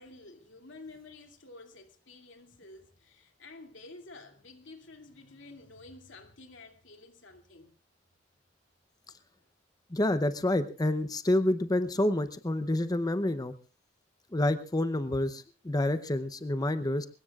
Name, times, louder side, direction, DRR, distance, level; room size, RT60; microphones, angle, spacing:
voice 1, 0.0-7.7, left 2 dB, 85° left, 2.6 m, -51 dB
voice 2, 9.9-13.5 14.3-17.1, left 1 dB, 20° left, 0.7 m, -28 dB
23.5 x 20.5 x 2.4 m
head